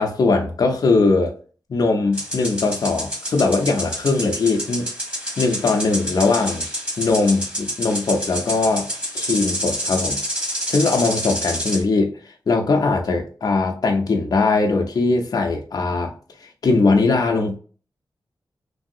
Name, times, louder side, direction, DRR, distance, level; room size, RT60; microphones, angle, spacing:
voice 1, 0.0-1.3 1.7-4.9 5.4-6.6 7.0-8.9 9.1-10.2 10.7-16.1 16.4-17.6, left 3 dB, 50° left, 2 dB, 0.5 m, -20 dB
sound 1, 2.1-11.8, equal, 15° right, 1.2 m, -28 dB
3.1 x 2.6 x 2.5 m, 0.40 s
wide cardioid pair, 140°, 8 cm